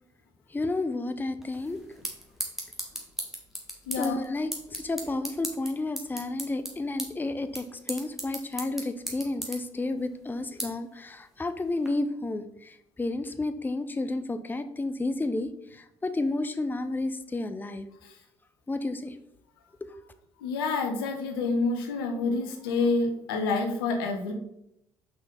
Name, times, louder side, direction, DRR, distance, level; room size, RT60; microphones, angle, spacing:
voice 1, 0.5-1.8 4.0-17.9 18.7-19.2, left 2 dB, 15° left, 10 dB, 0.6 m, -31 dB
sound 1, 1.4-11.9, equal, 5° right, 2.1 m, -39 dB
voice 2, 3.9-4.2 18.0-18.1 20.4-24.3, left 3 dB, 80° left, 5 dB, 1.0 m, -28 dB
6.0 x 5.5 x 4.1 m, 0.78 s
hypercardioid pair, 50°, 12 cm